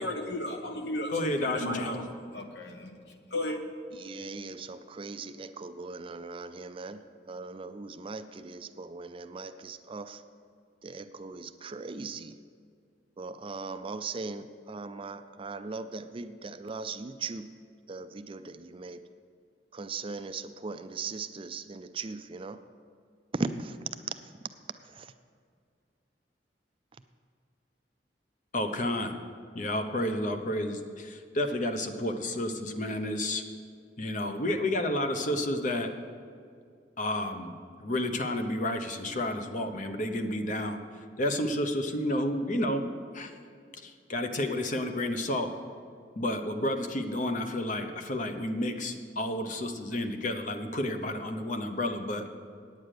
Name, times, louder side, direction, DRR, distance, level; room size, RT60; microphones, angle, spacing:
voice 1, 0.0-2.0 2.3-3.0 3.3-3.6, left 1 dB, 70° left, 4 dB, 1.2 m, -34 dB
voice 2, 1.1-2.0 28.5-29.2 29.5-33.4 34.0-35.9 37.0-40.8 41.2-43.4 43.7-45.5 46.2-52.3, left 1 dB, 45° left, 6 dB, 0.9 m, -31 dB
voice 3, 3.9-10.2 10.8-12.4 13.2-17.5 17.9-19.1 19.7-22.6 23.3-23.8 24.1-24.2 24.8-25.1, right 4 dB, 30° right, 10 dB, 0.4 m, -39 dB
9.4 x 8.9 x 6.6 m, 2.2 s
head